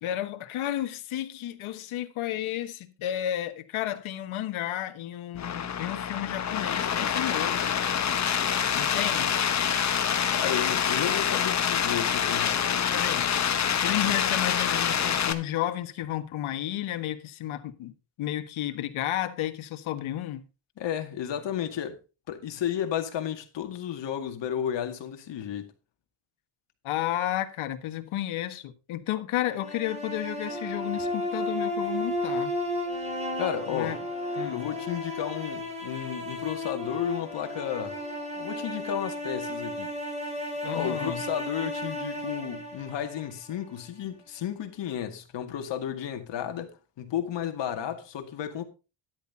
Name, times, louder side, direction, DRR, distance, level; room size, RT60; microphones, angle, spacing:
voice 1, 0.0-7.7 8.7-9.3 12.9-13.3 13.8-17.9 18.2-20.4 26.8-32.5 33.7-34.0 34.4-34.7 40.6-41.2, left 13 dB, 75° left, 1.6 m, -32 dB
sound 1, 5.4-15.3, left 8 dB, 35° left, 1.1 m, -26 dB
voice 2, 10.3-12.9 20.8-22.0 22.3-25.7 33.4-34.0 34.5-38.0 38.4-39.9 40.7-48.6, left 9 dB, 60° left, 2.1 m, -33 dB
sound 2, 29.5-43.7, left 1 dB, 15° right, 2.9 m, -33 dB
13.0 x 10.5 x 2.8 m
cardioid pair, 150°, 49 cm